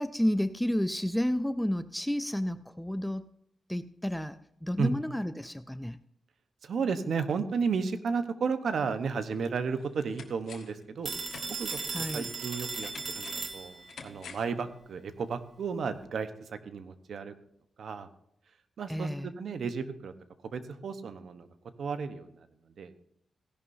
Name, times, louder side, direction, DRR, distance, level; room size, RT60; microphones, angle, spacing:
voice 1, 0.0-3.3 3.7-6.0 11.9-12.3 18.9-19.3, equal, 5° left, 12 dB, 0.4 m, -31 dB
voice 2, 6.6-11.1 11.5-11.8 12.1-17.3 17.8-18.1 18.8-20.1 20.5-21.5 21.8-22.5 22.8-22.9, right 5 dB, 65° right, 10 dB, 1.0 m, -33 dB
sound 1, 9.7-10.8 11.2-14.6 14.9-15.0, left 6 dB, 80° left, 1.6 m, -49 dB
Telephone, 11.1-14.1, right 4 dB, 45° right, 1.3 m, -37 dB
16.0 x 11.0 x 2.7 m, 0.76 s
wide cardioid pair, 120°, 0 cm